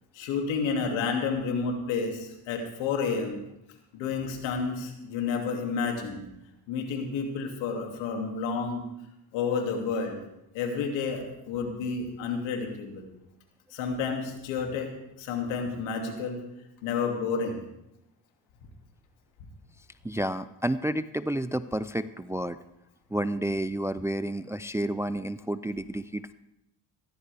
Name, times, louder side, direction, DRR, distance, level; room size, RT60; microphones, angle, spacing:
voice 1, 0.1-3.4 3.9-6.2 6.7-8.9 9.3-10.2 10.5-13.1 13.7-14.9 15.2-16.4 16.8-17.6, left 5 dB, 90° left, 2 dB, 2.6 m, -30 dB
voice 2, 20.0-22.6 23.1-26.3, right 1 dB, 5° right, 14 dB, 0.3 m, -30 dB
16.0 x 14.0 x 3.5 m, 0.85 s
supercardioid pair, 80°, 45 cm